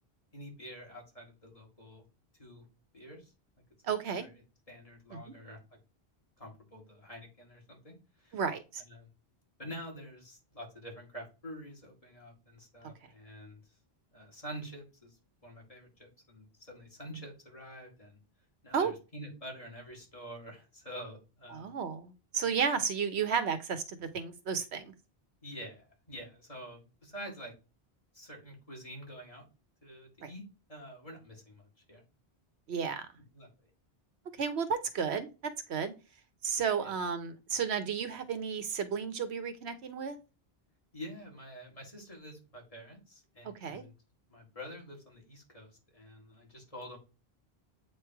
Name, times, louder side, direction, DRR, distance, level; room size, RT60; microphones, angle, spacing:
voice 1, 0.3-2.0 2.4-2.6 2.9-3.3 4.1-4.4 4.7-5.6 6.4-8.4 8.8-9.1 9.6-13.6 14.1-15.2 15.4-18.2 18.6-21.7 25.4-27.5 28.1-29.5 29.8-30.4 30.7-32.0 33.3-33.5 36.8-36.9 40.9-43.9 44.3-47.0, equal, 35° left, -1 dB, 2.5 m, -47 dB
voice 2, 3.9-4.3 5.1-5.2 8.3-8.8 18.7-18.9 21.5-24.9 30.2-30.3 32.7-33.1 34.4-35.3 35.7-35.9 36.4-40.2 43.6-43.8, right 6 dB, 90° right, 10 dB, 1.1 m, -32 dB
8.4 x 3.3 x 4.5 m, 0.30 s
omnidirectional pair, 1.1 m